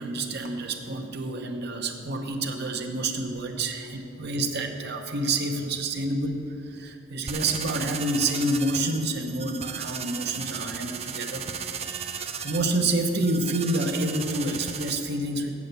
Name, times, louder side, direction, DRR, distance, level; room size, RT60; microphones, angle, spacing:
voice 1, 0.0-11.5 11.8-15.5, right 2 dB, 55° right, 5 dB, 0.8 m, -28 dB
sound 1, 7.3-14.9, right 7 dB, 30° right, 0.4 m, -35 dB
8.3 x 6.7 x 7.9 m, 2.9 s
head